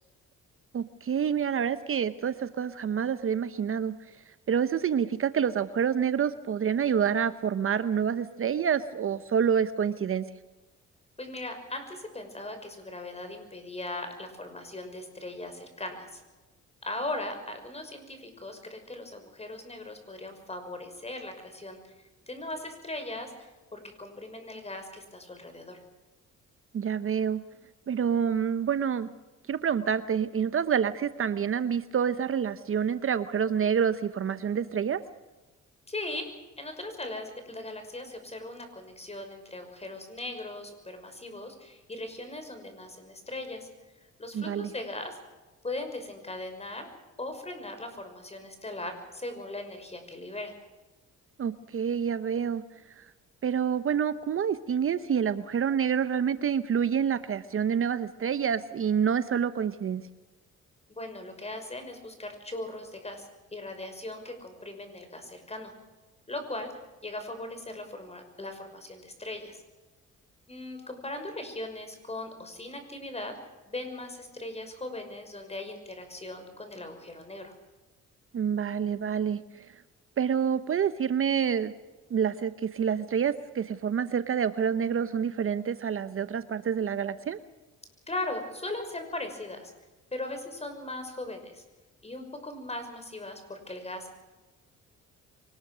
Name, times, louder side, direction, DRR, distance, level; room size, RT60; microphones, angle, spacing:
voice 1, 0.7-3.9 4.5-10.3 26.7-27.4 27.9-29.1 29.5-35.0 44.3-44.7 51.4-52.6 53.0-53.1 53.4-60.0 78.3-79.7 80.2-81.7 82.1-87.4, right 7 dB, 45° right, 12 dB, 0.9 m, -27 dB
voice 2, 11.2-16.2 16.8-21.9 22.3-25.8 35.9-36.3 36.6-43.7 44.2-45.2 45.6-46.9 47.2-50.5 60.9-65.7 66.3-66.7 67.0-69.6 70.5-73.3 73.7-77.5 88.1-89.7 90.1-91.6 92.0-94.1, left 2 dB, 20° left, 7 dB, 5.9 m, -39 dB
24.0 x 20.0 x 6.3 m, 1.2 s
cardioid pair, 90°, 30 cm